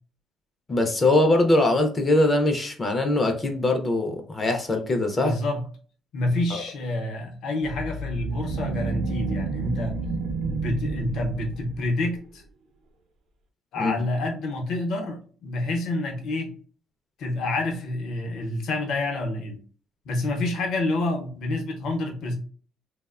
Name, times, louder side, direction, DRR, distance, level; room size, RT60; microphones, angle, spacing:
voice 1, 0.7-5.3 6.5-6.6 13.8-13.9, left 2 dB, 20° left, 5 dB, 0.4 m, -22 dB
voice 2, 5.2-5.6 6.1-9.9 10.4-12.4 13.7-16.5 17.2-19.6 20.1-22.4, left 2 dB, 60° left, 2 dB, 0.6 m, -28 dB
sound 1, 7.6-12.0, right 3 dB, 75° right, 0.5 m, -30 dB
2.8 x 2.0 x 2.3 m, 0.43 s
cardioid pair, 155°, 0 cm